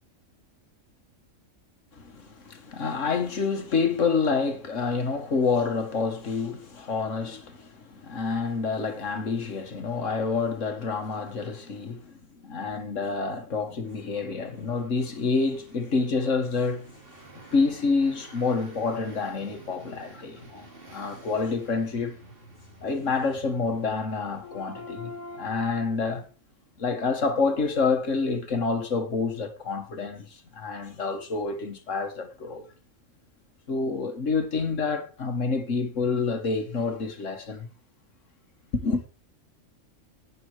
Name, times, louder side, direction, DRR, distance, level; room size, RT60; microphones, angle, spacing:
voice 1, 1.9-12.1 12.4-16.9 17.4-22.2 22.8-26.3 26.8-32.7 33.7-37.7 38.7-39.0, left 4 dB, 65° left, 2.0 m, -28 dB
sound 1, 13.8-26.3, right 2 dB, 40° right, 2.8 m, -51 dB
12.0 x 8.8 x 4.8 m
omnidirectional pair, 1.4 m